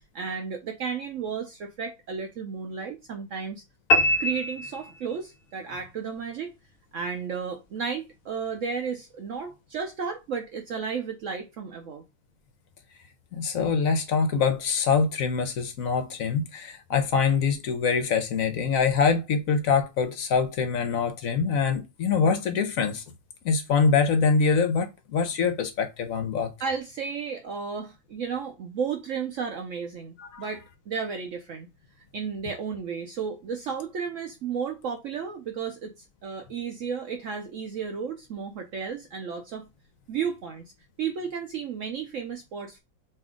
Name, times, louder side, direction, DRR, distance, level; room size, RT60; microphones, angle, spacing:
voice 1, 0.0-3.6 4.2-6.5 6.9-12.0 26.6-31.7 32.1-39.7 40.1-40.6 41.0-42.8, right 6 dB, 75° right, 0.7 m, -33 dB
sound 1, 3.9-5.4, left 1 dB, 85° left, 0.5 m, -24 dB
voice 2, 13.3-23.0 23.4-26.5 30.2-30.5, left 5 dB, 65° left, 0.8 m, -24 dB
5.4 x 2.7 x 3.7 m
omnidirectional pair, 2.0 m